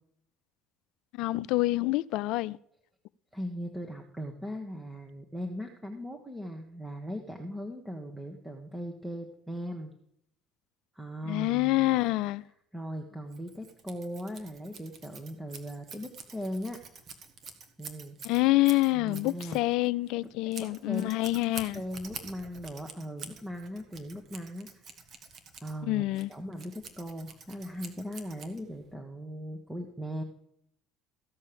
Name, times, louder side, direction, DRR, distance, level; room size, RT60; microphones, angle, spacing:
voice 1, 1.2-2.6 11.3-12.4 18.2-21.8 25.9-26.3, left 19 dB, 70° left, 0.4 m, -27 dB
voice 2, 3.3-9.9 10.9-12.0 12.7-16.8 17.8-18.2 18.9-19.6 20.2-20.3 20.6-21.2 21.7-25.0 25.6-26.0 26.3-30.2, equal, 10° right, 1.6 m, -39 dB
Scissors, 13.3-28.9, right 5 dB, 50° right, 1.9 m, -47 dB
15.5 x 5.5 x 7.0 m
hypercardioid pair, 75°, 0 cm